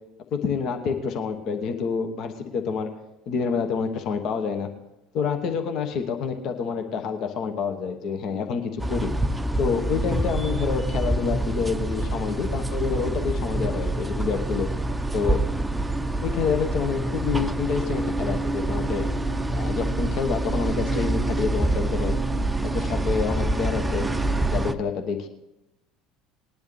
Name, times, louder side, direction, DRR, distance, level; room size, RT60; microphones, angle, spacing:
voice 1, 0.3-2.9 3.3-4.7 5.1-9.1 9.6-14.7 15.1-15.4 16.2-19.0 19.6-22.2 22.6-24.1 24.5-25.3, left 6 dB, 50° left, 5 dB, 1.1 m, -27 dB
sound 1, 8.8-24.7, right 1 dB, 10° right, 0.7 m, -26 dB
19.5 x 10.5 x 3.3 m, 0.91 s
figure-of-eight pair, 65°, 0 cm